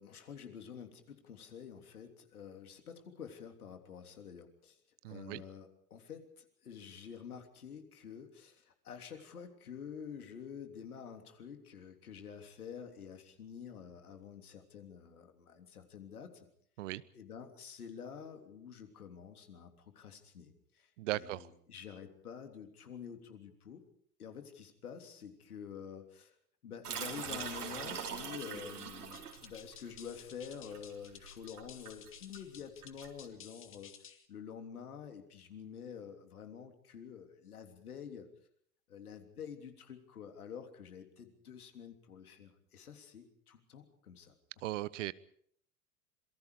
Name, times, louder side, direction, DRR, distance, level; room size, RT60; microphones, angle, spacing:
voice 1, 0.0-4.8 5.1-16.5 17.1-23.8 24.2-26.3 26.6-33.9 34.3-38.3 38.9-44.3, left 7 dB, 70° left, 5 dB, 3.4 m, -48 dB
voice 2, 5.0-5.4 16.8-17.0 21.0-21.5 44.6-45.1, right 16 dB, 55° right, 19 dB, 1.0 m, -37 dB
sound 1, 26.8-33.3, right 7 dB, 75° right, 5.1 m, -43 dB
sound 2, 29.1-34.3, left 8 dB, 30° left, 2.4 m, -54 dB
27.0 x 23.0 x 5.0 m, 0.63 s
figure-of-eight pair, 85°, 45 cm